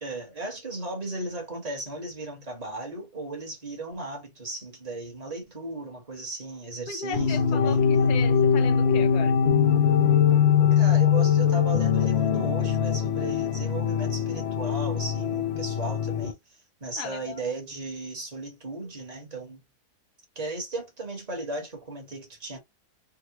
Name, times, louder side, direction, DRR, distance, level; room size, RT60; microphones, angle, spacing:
voice 1, 0.0-7.8 10.7-16.4 16.8-19.6 20.3-22.6, right 2 dB, 25° right, 1.3 m, -36 dB
voice 2, 6.9-9.4 17.0-17.4, left 7 dB, 75° left, 1.3 m, -36 dB
sound 1, 7.1-16.3, left 7 dB, 55° left, 0.7 m, -22 dB
3.7 x 2.3 x 2.9 m
omnidirectional pair, 1.7 m